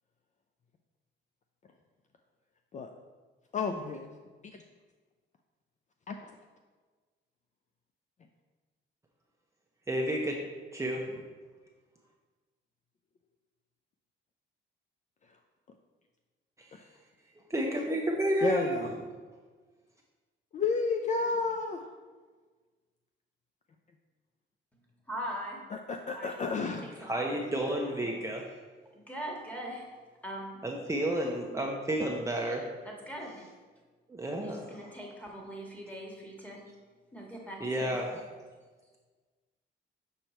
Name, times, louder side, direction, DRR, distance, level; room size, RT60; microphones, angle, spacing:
voice 1, 3.5-4.1 6.1-6.3 16.7-16.8 18.4-18.9 20.5-21.8 25.7-26.9, left 4 dB, 40° left, 4 dB, 0.4 m, -31 dB
voice 2, 9.9-10.4 10.7-11.2 17.5-18.8 27.0-28.4 30.6-32.7 34.1-34.8 37.6-38.1, right 1 dB, 15° right, -1 dB, 0.8 m, -31 dB
voice 3, 25.1-25.6 26.1-26.3 26.8-27.3 28.0-28.1 28.9-30.6 32.8-33.4 34.4-36.6 37.1-37.9, equal, 5° left, -2 dB, 1.8 m, -41 dB
6.6 x 4.5 x 4.3 m, 1.4 s
cardioid pair, 90°, 20 cm